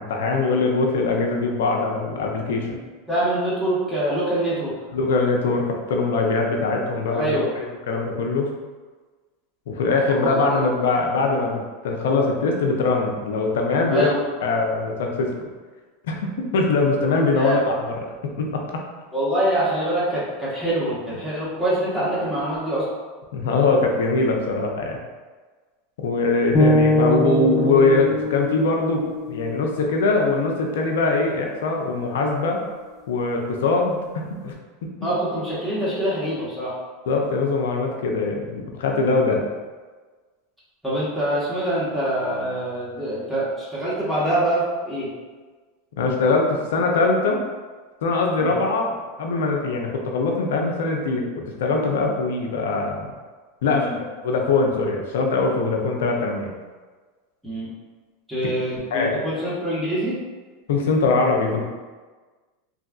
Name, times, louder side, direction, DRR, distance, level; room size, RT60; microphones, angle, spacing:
voice 1, 0.0-2.7 4.9-8.5 9.7-14.1 14.4-15.3 16.1-17.9 18.4-18.6 23.3-25.0 26.0-32.6 33.1-34.0 34.3-34.5 37.1-39.5 46.0-47.4 48.0-53.1 53.6-53.9 54.2-56.5 58.9-59.1 60.7-61.6, left 3 dB, 80° left, 1 dB, 0.5 m, -22 dB
voice 2, 3.1-4.7 7.1-7.5 10.0-10.8 13.9-14.2 17.3-17.6 19.1-22.8 35.0-36.7 40.8-45.1 48.4-48.5 53.6-53.9 57.4-57.7 58.3-60.2, right 1 dB, 5° right, -10 dB, 1.4 m, -25 dB
sound 1, 26.5-30.7, left 1 dB, 25° left, 0.5 m, -23 dB
3.0 x 2.5 x 2.4 m, 1.4 s
hypercardioid pair, 110°, 0 cm